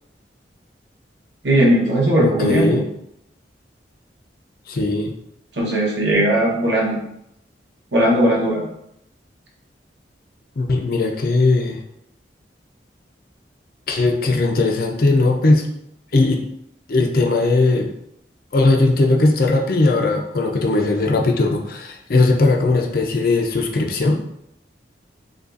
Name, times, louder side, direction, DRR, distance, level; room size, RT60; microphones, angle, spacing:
voice 1, 1.4-2.8 5.6-7.0 7.9-8.7, right 1 dB, 80° right, -3 dB, 1.0 m, -18 dB
voice 2, 2.2-2.8 4.7-5.1 10.6-11.8 13.9-15.7 16.1-16.4 16.9-17.9 18.5-24.2, left 2 dB, 55° left, 2 dB, 0.5 m, -18 dB
5.0 x 2.3 x 2.5 m, 0.78 s
head